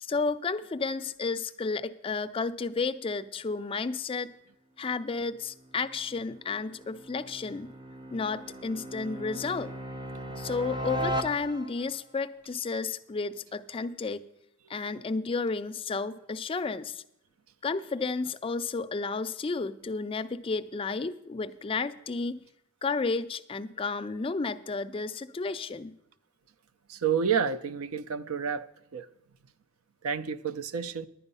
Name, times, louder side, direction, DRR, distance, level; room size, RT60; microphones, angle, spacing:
voice 1, 0.0-4.3 4.8-7.7 8.1-9.7 10.4-14.3 14.7-17.0 17.6-22.4 22.8-26.0, left 4 dB, 25° left, 0.4 m, -32 dB
sound 1, 5.5-12.0, equal, 20° right, 0.6 m, -37 dB
voice 2, 26.9-28.7 28.9-29.1 30.0-31.1, right 6 dB, 85° right, 0.5 m, -29 dB
11.0 x 8.9 x 5.4 m
head